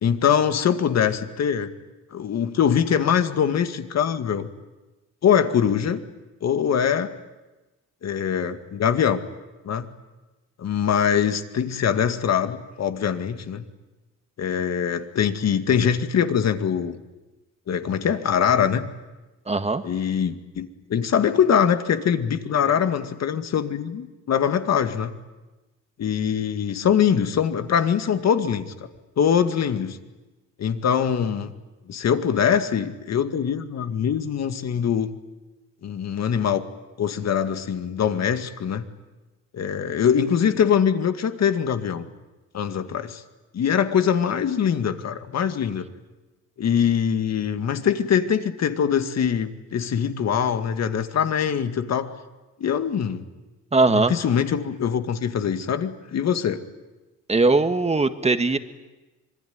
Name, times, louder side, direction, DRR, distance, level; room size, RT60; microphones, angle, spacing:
voice 1, 0.0-1.7 2.1-4.5 5.2-6.0 6.4-7.1 8.0-9.2 9.6-9.9 10.6-13.6 14.4-17.0 17.7-18.9 19.8-25.1 26.0-28.7 29.2-30.0 30.6-31.5 31.9-35.1 35.8-36.6 37.0-38.8 39.5-42.0 42.5-43.2 43.5-45.9 46.6-52.1 52.6-53.2 53.9-56.6, left 8 dB, 60° left, 8 dB, 2.1 m, -23 dB
voice 2, 19.5-19.8 53.7-54.1 57.3-58.6, right 3 dB, 20° right, 9 dB, 1.8 m, -20 dB
26.0 x 21.5 x 9.5 m, 1.1 s
cardioid pair, 90°, 30 cm